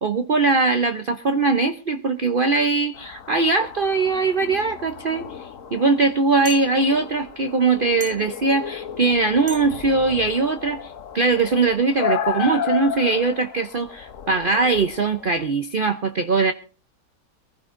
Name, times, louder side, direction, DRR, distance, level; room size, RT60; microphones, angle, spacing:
voice 1, 0.0-16.5, right 3 dB, 40° right, 9 dB, 0.8 m, -21 dB
sound 1, 2.9-15.5, left 8 dB, 55° left, 1.2 m, -33 dB
sound 2, 6.5-6.7 8.0-8.3 9.5-9.7, right 5 dB, 20° right, 1.3 m, -36 dB
23.5 x 15.5 x 2.6 m, 0.36 s
omnidirectional pair, 1.8 m